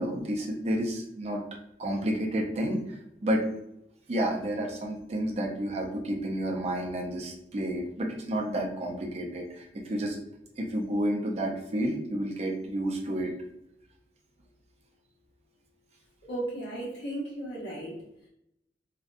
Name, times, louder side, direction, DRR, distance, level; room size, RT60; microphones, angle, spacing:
voice 1, 0.0-1.4 1.8-3.4 4.1-10.2 10.6-13.3, right 1 dB, 35° right, 0 dB, 0.4 m, -30 dB
voice 2, 16.3-17.9, right 1 dB, 75° left, -7 dB, 1.2 m, -35 dB
2.6 x 2.1 x 2.4 m, 0.80 s
head